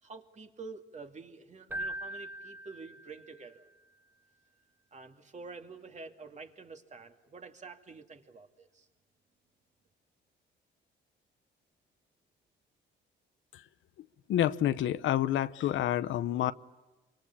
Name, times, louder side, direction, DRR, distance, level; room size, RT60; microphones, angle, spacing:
voice 1, 0.0-3.7 4.9-8.9, right 4 dB, 35° right, 2.4 m, -48 dB
Keyboard (musical), 1.7-3.5, right 1 dB, 10° right, 1.1 m, -40 dB
voice 2, 14.0-16.5, left 12 dB, 75° left, 0.9 m, -29 dB
27.5 x 25.0 x 8.5 m
cardioid pair, 90°, 20 cm